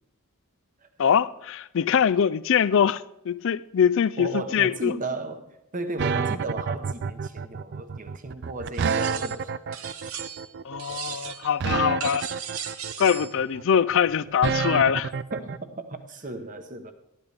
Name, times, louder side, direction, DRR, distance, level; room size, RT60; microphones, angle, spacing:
voice 1, 1.0-4.9 10.6-12.3 13.0-15.1, left 8 dB, 65° left, 0.4 m, -23 dB
voice 2, 4.2-9.5 15.3-16.9, right 2 dB, 40° right, 0.9 m, -35 dB
sound 1, 6.0-15.6, right 5 dB, 55° right, 0.4 m, -29 dB
sound 2, 8.7-9.4 9.7-10.5 10.8-11.5 12.0-13.3, right 8 dB, 80° right, 0.8 m, -37 dB
12.5 x 11.0 x 3.4 m
head